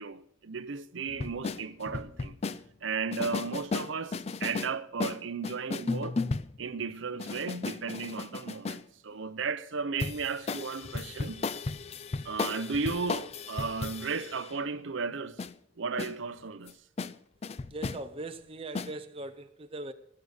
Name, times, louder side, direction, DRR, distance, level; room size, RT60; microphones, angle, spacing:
voice 1, 0.0-2.3 2.8-6.2 6.6-11.5 12.2-15.4 15.8-16.7, right 5 dB, 70° right, 0.6 m, -35 dB
sound 1, 1.1-2.6 3.1-4.7 5.0-6.6 7.2-8.8 10.0-14.6 15.4-15.5 16.0-16.1 16.7-16.8 17.0-17.1 17.4-18.0 18.7-18.9, left 4 dB, 30° left, 0.4 m, -35 dB
voice 2, 17.7-19.9, right 2 dB, 25° right, 0.6 m, -40 dB
17.5 x 6.7 x 6.4 m
head